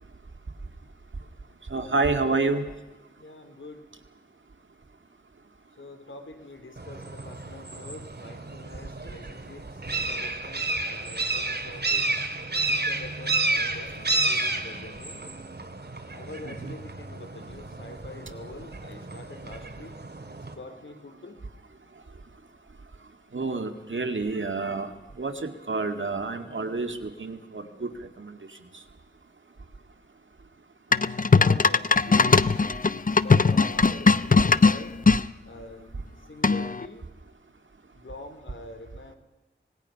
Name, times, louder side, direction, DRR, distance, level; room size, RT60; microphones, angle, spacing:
voice 1, 1.7-2.6 16.5-16.8 23.3-24.9 25.2-27.9 28.2-28.3, right 3 dB, 80° right, 6 dB, 2.0 m, -28 dB
voice 2, 3.2-3.9 5.8-12.1 12.5-15.3 16.1-20.0 20.3-21.4 31.3-35.0 35.4-37.1 37.9-39.2, left 2 dB, 80° left, 7 dB, 3.0 m, -44 dB
sound 1, 6.8-20.6, right 3 dB, 60° right, 2.2 m, -31 dB
sound 2, 30.9-35.2 36.4-36.8, left 4 dB, 45° left, 0.6 m, -19 dB
25.5 x 20.0 x 5.8 m, 1.1 s
wide cardioid pair, 55°, 20 cm